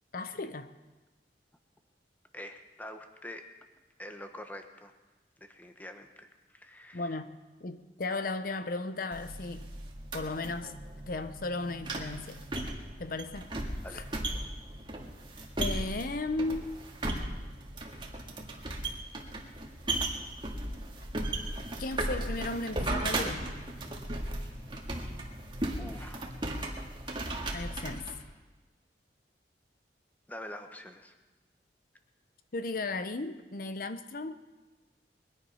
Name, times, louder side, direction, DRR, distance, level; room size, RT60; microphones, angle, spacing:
voice 1, 0.1-0.7 6.9-9.7 10.1-10.8 11.1-12.4 13.0-13.5 13.9-14.0 15.6-16.8 21.8-23.4 27.5-28.1 32.5-34.4, left 3 dB, 55° left, 11 dB, 0.8 m, -35 dB
voice 2, 2.3-3.4 4.0-4.9 5.4-7.1 13.8-14.1 15.3-15.4 24.9-25.0 25.8-26.3 30.3-31.2, left 1 dB, 10° left, 6 dB, 1.1 m, -45 dB
sound 1, 9.1-28.2, right 1 dB, 30° right, 1.8 m, -36 dB
22.0 x 10.5 x 5.7 m, 1.2 s
head